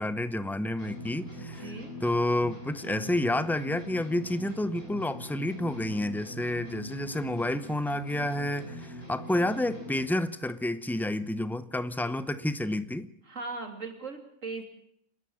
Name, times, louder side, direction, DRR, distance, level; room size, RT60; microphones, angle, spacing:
voice 1, 0.0-1.7 2.0-13.1, left 1 dB, 5° left, 13 dB, 0.4 m, -30 dB
sound 1, 0.8-10.2, left 1 dB, 40° left, 8.1 m, -42 dB
voice 2, 1.3-1.9 13.3-14.6, right 4 dB, 60° right, 5 dB, 3.1 m, -39 dB
28.5 x 11.5 x 8.7 m, 0.73 s
omnidirectional pair, 1.5 m